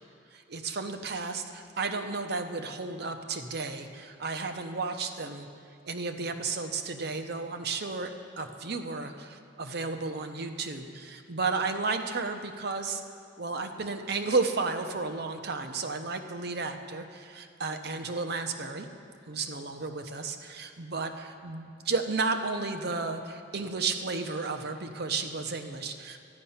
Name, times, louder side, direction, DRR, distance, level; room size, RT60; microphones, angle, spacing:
voice 1, 0.3-5.5 5.8-13.0 13.4-18.9 19.3-26.2, right 4 dB, 55° right, 6 dB, 0.7 m, -33 dB
12.5 x 9.7 x 5.7 m, 2.4 s
head